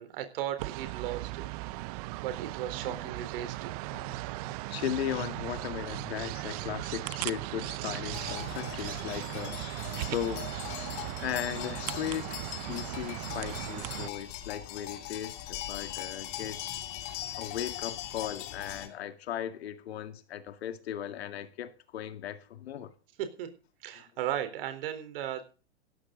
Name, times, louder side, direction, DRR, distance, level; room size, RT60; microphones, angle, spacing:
voice 1, 0.0-1.5 1.9-3.8 23.2-23.5 23.8-25.4, right 11 dB, 55° right, 4.0 m, -36 dB
sound 1, 0.6-14.1, right 20 dB, 35° right, 0.6 m, -37 dB
voice 2, 3.9-9.8 10.1-16.9 17.4-22.9, left 11 dB, 65° left, 2.2 m, -37 dB
sound 2, 8.1-18.9, left 12 dB, 40° left, 2.9 m, -40 dB
16.0 x 13.0 x 3.9 m
hypercardioid pair, 130°, 34 cm